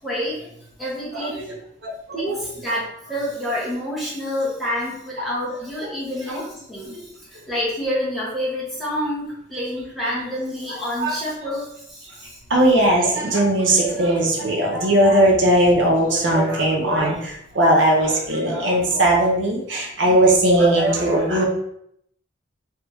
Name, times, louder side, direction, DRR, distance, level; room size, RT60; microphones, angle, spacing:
voice 1, 0.0-0.4 0.8-1.4 2.1-12.4, equal, ahead, -8 dB, 1.1 m, -28 dB
voice 2, 1.8-2.2 7.0-7.1 11.0-11.1 12.5-21.4, right 1 dB, 70° right, -1 dB, 0.9 m, -18 dB
3.4 x 3.2 x 3.1 m, 0.72 s
head